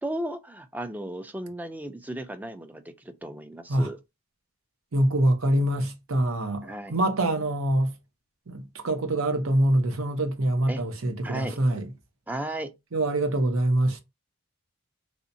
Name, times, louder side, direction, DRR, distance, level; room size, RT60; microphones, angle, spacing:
voice 1, 0.0-4.0 6.6-7.0 10.7-10.8 11.2-11.6 12.3-12.7, right 1 dB, 10° right, 0.3 m, -35 dB
voice 2, 4.9-7.9 8.5-11.9 12.9-14.0, right 1 dB, 85° right, 0.8 m, -25 dB
3.3 x 2.8 x 2.7 m
head